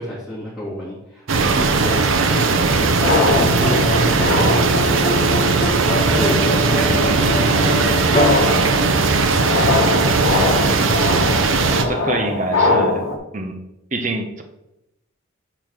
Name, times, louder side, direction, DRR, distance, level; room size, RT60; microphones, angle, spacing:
voice 1, 0.0-9.3, equal, 5° left, -9 dB, 1.9 m, -31 dB
sound 1, 1.3-11.8, right 4 dB, 70° right, 0.7 m, -18 dB
sound 2, 1.9-13.2, left 3 dB, 75° left, 1.1 m, -24 dB
sound 3, 3.1-9.6, left 2 dB, 30° left, 0.9 m, -25 dB
voice 2, 6.7-7.2 11.9-13.0 13.3-13.6 13.9-14.4, right 2 dB, 35° right, 5 dB, 0.9 m, -25 dB
6.9 x 3.9 x 6.1 m, 0.88 s
head